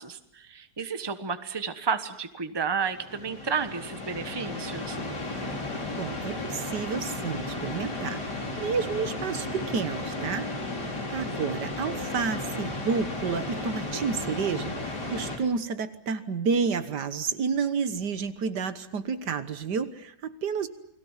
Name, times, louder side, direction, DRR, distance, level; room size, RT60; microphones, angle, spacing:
voice 1, 0.0-5.0, right 6 dB, 15° right, 10 dB, 1.1 m, -32 dB
sound 1, 2.8-15.4, left 2 dB, 75° left, 4.7 m, -34 dB
voice 2, 6.0-10.5 11.1-20.7, right 5 dB, 75° right, 11 dB, 1.9 m, -30 dB
29.5 x 21.5 x 7.3 m, 0.71 s
omnidirectional pair, 1.8 m